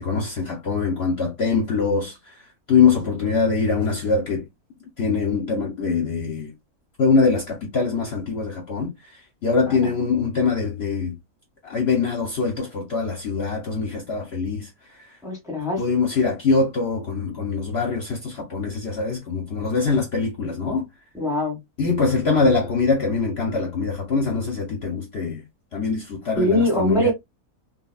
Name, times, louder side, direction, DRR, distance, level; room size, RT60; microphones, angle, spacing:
voice 1, 0.0-2.4 2.7-4.5 5.0-6.5 7.0-11.1 11.6-14.7 15.8-20.8 21.8-25.4 25.7-27.1, left 4 dB, 55° left, 0.8 m, -23 dB
voice 2, 15.2-15.8 21.1-21.6 26.4-27.1, left 1 dB, 5° right, 0.9 m, -22 dB
3.2 x 2.2 x 2.2 m
omnidirectional pair, 1.5 m